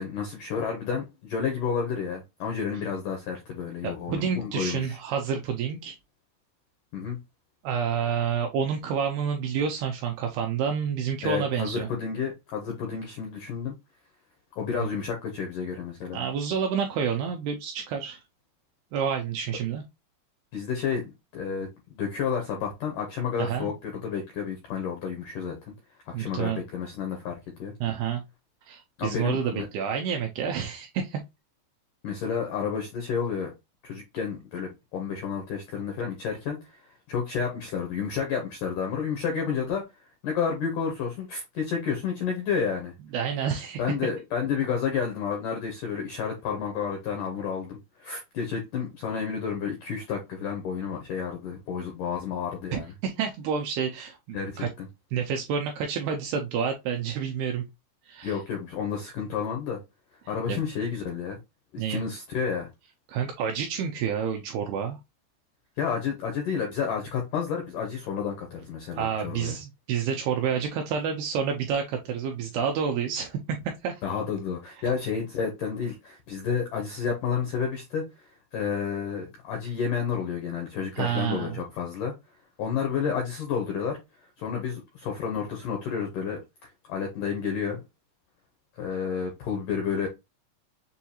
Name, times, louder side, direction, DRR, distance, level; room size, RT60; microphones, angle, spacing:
voice 1, 0.0-5.0 6.9-7.2 11.2-13.7 14.6-16.2 20.5-21.0 21.3-25.7 26.1-27.7 29.0-29.7 32.0-33.5 33.8-36.8 37.1-39.8 40.2-42.9 43.8-52.9 54.3-54.9 58.2-59.8 60.3-61.4 61.7-62.7 65.8-69.6 74.0-82.1 82.6-84.0 84.4-86.4 86.9-87.8 88.8-90.1, left 6 dB, 80° left, 1.8 m, -30 dB
voice 2, 3.8-6.0 7.6-11.9 14.8-14.9 16.1-18.2 18.9-19.8 23.4-23.7 26.1-26.6 27.8-28.2 28.7-31.2 43.1-43.8 52.7-54.7 55.1-57.6 58.1-58.4 60.5-60.6 61.8-62.0 63.1-65.0 69.0-73.4 73.8-74.0 81.0-81.6, right 7 dB, 85° right, 2.3 m, -29 dB
6.9 x 2.3 x 2.8 m
omnidirectional pair, 5.1 m